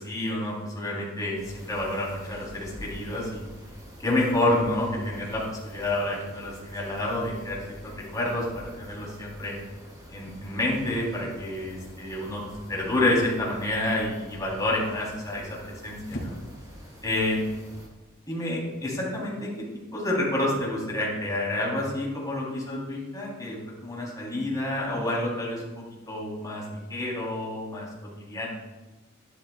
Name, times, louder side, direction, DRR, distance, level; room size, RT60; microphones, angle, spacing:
voice 1, 0.0-3.5 4.0-9.6 10.1-12.4 12.7-16.4 17.0-17.4 18.3-19.7 19.9-27.9 28.2-28.5, left 1 dB, 15° left, -4 dB, 3.5 m, -29 dB
sound 1, 1.4-17.9, equal, 20° right, 2.2 m, -47 dB
sound 2, 15.4-21.4, equal, 60° left, 2.5 m, -46 dB
12.5 x 11.5 x 2.4 m, 1.2 s
head